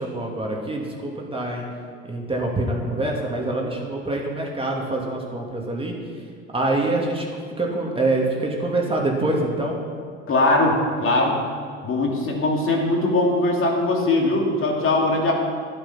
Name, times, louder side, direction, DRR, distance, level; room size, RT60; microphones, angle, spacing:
voice 1, 0.0-1.6 2.1-5.9 6.5-7.3 7.6-9.8, right 2 dB, 15° right, -1 dB, 2.5 m, -25 dB
voice 2, 10.3-11.4 11.8-15.3, left 2 dB, 40° left, -1 dB, 2.6 m, -20 dB
11.5 x 9.0 x 5.8 m, 2.1 s
hypercardioid pair, 65°, 32 cm